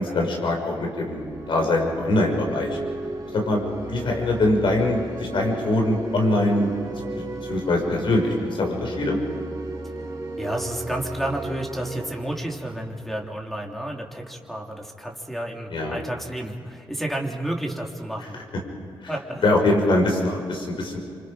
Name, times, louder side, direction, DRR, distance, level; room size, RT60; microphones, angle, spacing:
voice 1, 0.0-2.8 3.3-6.7 7.1-9.2 15.7-16.0 19.4-21.0, left 2 dB, 70° left, 2 dB, 5.9 m, -23 dB
sound 1, 1.0-13.6, right 2 dB, 45° right, 4.7 m, -35 dB
voice 2, 10.4-18.4 19.1-19.5, right 1 dB, ahead, 0 dB, 3.4 m, -31 dB
27.5 x 26.5 x 5.2 m, 2.5 s
cardioid pair, 80°, 9 cm